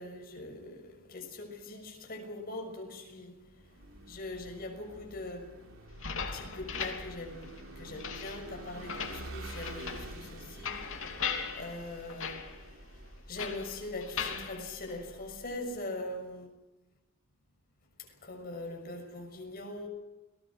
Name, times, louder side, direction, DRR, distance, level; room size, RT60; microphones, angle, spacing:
voice 1, 0.0-3.3 4.1-5.5 6.3-7.5 7.8-10.8 11.6-12.4 13.3-16.4 18.2-19.9, left 2 dB, 45° left, 6.3 m, -41 dB
Vehicle / Engine, 3.5-13.3, right 2 dB, 70° right, 3.3 m, -49 dB
sound 1, 5.9-15.5, left 6 dB, 65° left, 3.2 m, -40 dB
29.5 x 20.0 x 6.2 m
head